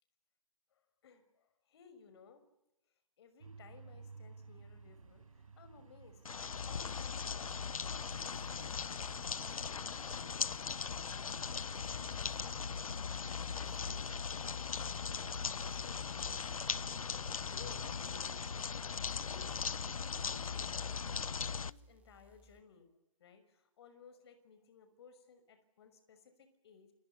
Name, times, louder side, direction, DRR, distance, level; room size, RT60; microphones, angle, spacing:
voice 1, 0.7-2.4 3.2-9.3 9.6-10.9 11.8-13.1 13.3-16.2 17.5-21.3 21.6-22.9 23.2-26.9, left 5 dB, 50° left, 10 dB, 6.0 m, -60 dB
sound 1, 3.4-16.0, right 4 dB, 75° right, 6.6 m, -58 dB
sound 2, 6.2-21.7, left 6 dB, 80° left, 0.9 m, -39 dB
sound 3, 8.0-22.6, equal, 10° right, 2.6 m, -65 dB
29.0 x 27.5 x 7.1 m, 0.86 s
hypercardioid pair, 145°, 18 cm